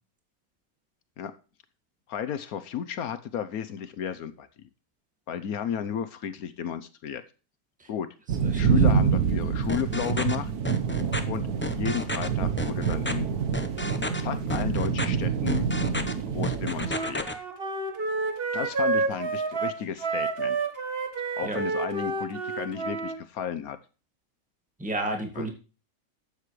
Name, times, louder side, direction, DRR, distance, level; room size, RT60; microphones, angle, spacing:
voice 1, 2.1-4.5 5.3-7.2 7.9-8.1 8.5-10.5 11.2-13.3 14.1-15.7 16.3-17.3 18.5-20.6 21.4-23.8 25.4-25.5, left 8 dB, 75° left, 11 dB, 1.2 m, -33 dB
sound 1, 8.3-16.9, right 6 dB, 80° right, 1.6 m, -26 dB
sound 2, 9.7-10.4 10.6-11.2 11.6-12.3 12.6-13.1 13.5-14.2 14.5-15.1 15.5-16.1 16.4-17.3, left 1 dB, 10° left, 0.7 m, -31 dB
Wind instrument woodwind instrument, 16.8-23.2, right 4 dB, 40° right, 1.6 m, -29 dB
voice 2, 24.8-25.5, right 1 dB, 5° right, 3 dB, 1.9 m, -31 dB
12.5 x 8.4 x 3.2 m, 0.34 s
omnidirectional pair, 1.6 m